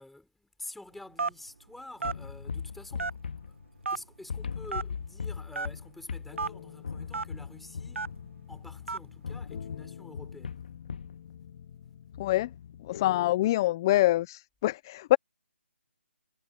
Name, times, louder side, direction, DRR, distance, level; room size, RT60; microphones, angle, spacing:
voice 1, 0.0-3.2 3.4-3.6 3.9-8.1 8.5-10.6, left 2 dB, ahead, 4.3 m, -48 dB
Telephone, 1.2-1.5 2.0-2.2 3.0-3.4 3.8-4.0 4.7-4.9 5.5-5.7 6.4-6.5 7.1-7.2 7.9-8.2 8.9-9.1, right 4 dB, 85° right, 1.0 m, -31 dB
sound 1, 2.0-4.0 4.3-8.8 9.2-11.2, left 6 dB, 55° left, 1.9 m, -39 dB
sound 2, 6.3-13.3, left 9 dB, 35° left, 1.5 m, -47 dB
voice 2, 12.2-12.5 12.8-15.2, left 16 dB, 20° left, 0.4 m, -25 dB
hypercardioid pair, 165°, 7 cm